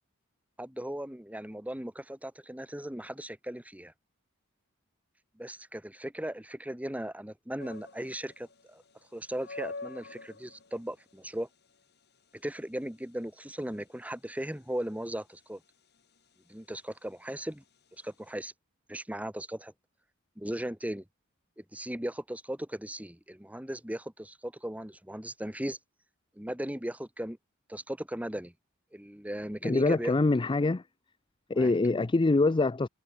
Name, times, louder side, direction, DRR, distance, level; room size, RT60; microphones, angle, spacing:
voice 1, 0.6-3.9 5.4-8.8 9.1-11.5 12.3-15.6 16.5-17.6 18.0-18.5 18.9-19.7 20.4-21.0 21.6-25.8 26.4-27.4 27.7-28.5 28.9-30.2 31.5-31.7, right 1 dB, 5° right, 2.1 m, -37 dB
sound 1, 7.6-18.3, left 3 dB, 55° left, 5.3 m, -49 dB
voice 2, 29.6-30.8 31.5-32.9, left 3 dB, 25° left, 0.4 m, -24 dB
head